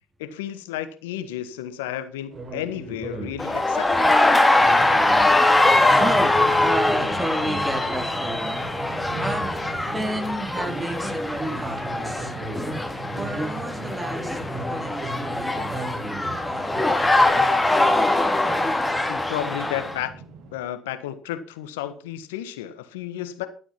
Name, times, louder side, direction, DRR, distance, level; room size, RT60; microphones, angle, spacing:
voice 1, 0.2-4.1 19.1-20.1 20.5-23.5, left 11 dB, 85° left, 11 dB, 1.3 m, -32 dB
sound 1, 2.3-17.6, right 2 dB, 45° right, 4.5 m, -37 dB
sound 2, 3.4-20.0, left 2 dB, 10° left, 2.6 m, -22 dB
sound 3, 4.6-20.6, right 2 dB, 70° right, 2.2 m, -40 dB
voice 2, 5.8-12.3 13.1-14.4 14.7-17.9, right 1 dB, 15° right, 5 dB, 4.0 m, -32 dB
12.0 x 8.3 x 5.8 m, 0.41 s
hypercardioid pair, 55°, 0 cm